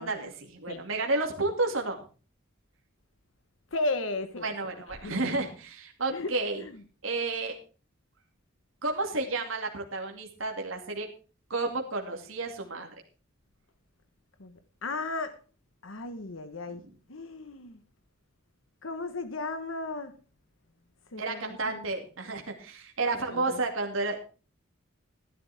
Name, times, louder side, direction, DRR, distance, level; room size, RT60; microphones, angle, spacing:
voice 1, 0.0-2.0 4.4-6.6 7.0-7.6 8.8-11.1 11.5-12.9 16.7-16.9 21.2-24.2, right 3 dB, 85° right, 2 dB, 2.4 m, -31 dB
voice 2, 3.7-4.5 4.9-5.2 6.1-6.8 14.4-14.5 14.8-15.4 15.8-16.8 17.1-17.8 18.8-20.1 21.1-21.8 23.3-23.6, left 2 dB, 85° left, 10 dB, 1.2 m, -35 dB
15.0 x 11.0 x 3.5 m, 0.36 s
head